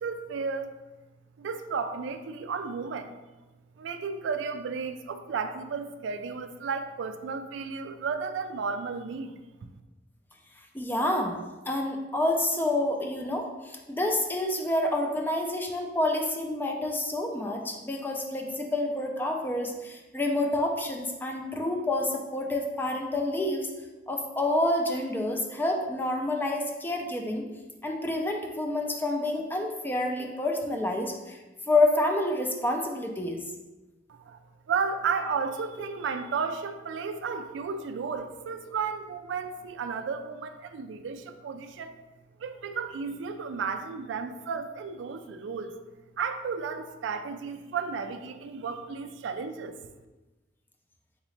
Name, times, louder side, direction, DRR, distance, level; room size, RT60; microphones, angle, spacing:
voice 1, 0.0-0.7 1.4-3.1 3.8-9.3 34.1-34.4 34.7-42.0 42.4-45.7 46.2-49.8, right 5 dB, 70° right, 9 dB, 0.3 m, -33 dB
voice 2, 10.7-11.4 11.7-23.7 24.1-27.4 27.8-31.4 31.7-33.4, left 1 dB, 10° left, 3 dB, 0.4 m, -28 dB
4.1 x 3.6 x 3.1 m, 1.2 s
head